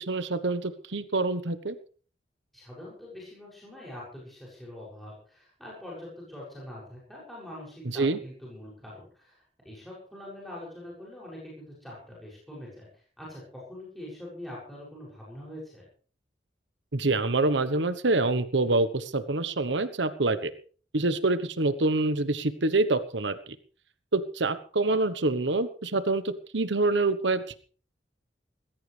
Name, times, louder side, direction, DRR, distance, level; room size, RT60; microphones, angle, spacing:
voice 1, 0.1-1.7 7.9-8.2 16.9-20.5 20.9-23.3 24.1-26.2 26.5-27.4, right 2 dB, 80° right, 12 dB, 1.2 m, -26 dB
voice 2, 2.5-9.4 9.6-15.9, left 1 dB, ahead, -6 dB, 6.9 m, -44 dB
19.5 x 16.0 x 3.4 m, 0.41 s
head